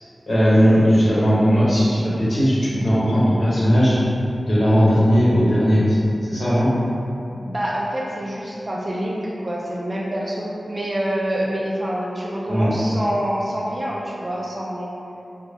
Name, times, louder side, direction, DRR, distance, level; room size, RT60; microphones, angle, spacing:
voice 1, 0.3-4.0 4.4-6.0 6.2-6.7 12.5-12.7, equal, 40° left, -10 dB, 0.9 m, -17 dB
voice 2, 7.3-14.9, equal, 35° right, -4 dB, 0.3 m, -26 dB
2.4 x 2.0 x 3.3 m, 2.8 s
wide cardioid pair, 100°, 0 cm